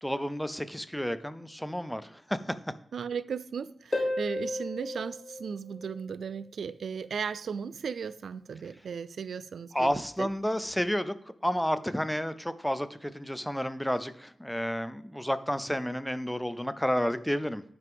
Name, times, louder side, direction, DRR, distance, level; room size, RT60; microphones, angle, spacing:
voice 1, 0.0-2.4 9.7-11.1 11.4-17.6, equal, 5° left, 13 dB, 0.5 m, -31 dB
voice 2, 2.9-9.9 10.2-10.3, right 6 dB, 90° right, 16 dB, 0.3 m, -36 dB
Harp, 3.9-6.4 9.9-10.0, left 1 dB, 25° left, 1.1 m, -34 dB
10.5 x 5.9 x 3.5 m, 0.66 s
wide cardioid pair, 140°, 0 cm